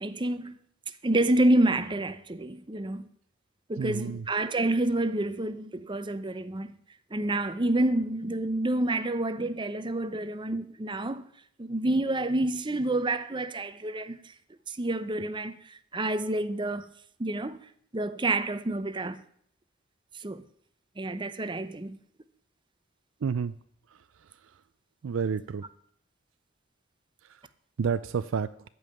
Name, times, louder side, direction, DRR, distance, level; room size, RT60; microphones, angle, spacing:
voice 1, 0.0-0.5 1.0-3.1 3.7-6.7 7.1-11.2 11.6-14.2 14.7-15.6 15.9-16.9 17.2-17.6 17.9-19.2 20.2-20.4 21.0-22.0, right 1 dB, 25° right, 0.7 m, -28 dB
voice 2, 3.8-4.2 23.2-23.5 25.0-25.6 27.8-28.5, right 6 dB, 75° right, 0.4 m, -29 dB
14.5 x 5.5 x 9.1 m
head